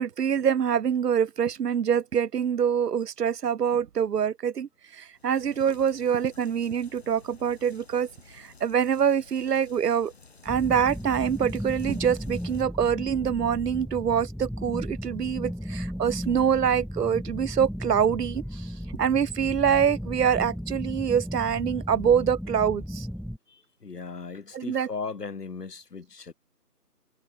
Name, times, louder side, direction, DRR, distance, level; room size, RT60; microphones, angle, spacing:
voice 1, 0.0-10.1 10.4-23.1 24.5-24.9, right 8 dB, 80° right, 0.7 m, -25 dB
sound 1, 5.1-12.6, left 4 dB, 40° left, 2.2 m, -54 dB
sound 2, 10.5-23.4, equal, ahead, 0.5 m, -35 dB
voice 2, 23.5-26.3, left 4 dB, 75° left, 2.0 m, -37 dB
figure-of-eight pair, 175°, 47 cm